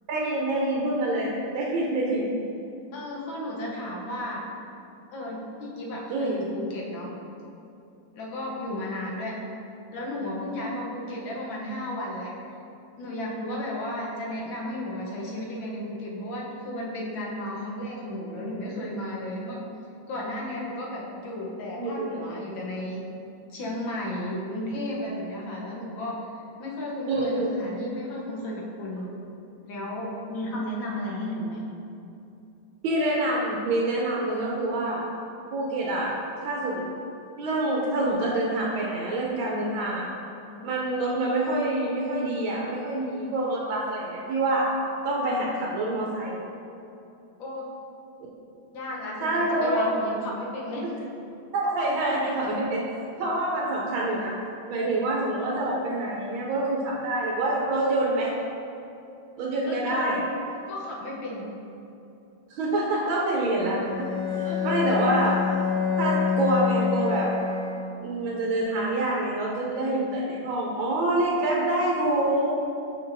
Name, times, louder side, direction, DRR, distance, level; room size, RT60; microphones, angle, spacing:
voice 1, 0.1-2.3 6.1-6.4 21.8-22.1 27.1-27.6 32.8-35.0 35.5-36.1 36.4-36.9 37.4-40.1 40.6-44.7 45.0-46.4 49.2-49.9 51.5-54.3 54.7-58.3 59.4-60.2 62.5-65.4 66.0-67.3 68.0-72.5, right 2 dB, 90° right, -3 dB, 1.5 m, -26 dB
voice 2, 2.9-4.4 5.1-7.1 8.1-9.4 9.9-12.3 13.0-19.6 20.1-23.0 23.5-26.2 26.6-29.1 29.6-31.7 47.4-47.7 48.7-50.8 59.6-60.4 60.7-61.5 64.4-64.9, left 1 dB, 75° left, -3 dB, 1.7 m, -34 dB
Bowed string instrument, 63.8-68.2, left 6 dB, 40° left, 0.8 m, -27 dB
6.3 x 6.1 x 2.6 m, 2.8 s
omnidirectional pair, 2.1 m